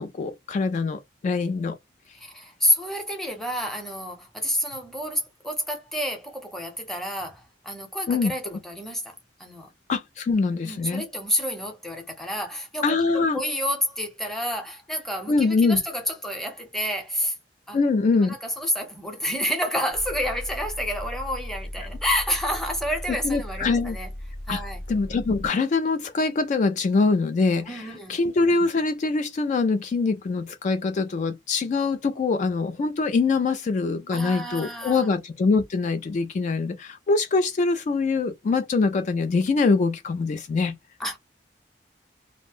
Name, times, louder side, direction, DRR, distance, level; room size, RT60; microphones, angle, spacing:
voice 1, 0.0-1.8 8.1-8.6 9.9-11.0 12.8-13.4 15.3-15.8 17.7-18.4 23.2-24.0 24.5-24.6 24.9-40.8, left 4 dB, 40° left, 0.3 m, -24 dB
voice 2, 2.2-9.1 9.4-9.7 10.6-17.4 17.7-17.8 18.2-24.1 24.5-24.8 27.6-28.2 34.1-35.1 41.0-41.2, equal, ahead, 0.8 m, -29 dB
sound 1, 19.9-25.5, left 1 dB, 70° left, 0.7 m, -37 dB
2.5 x 2.1 x 3.4 m
head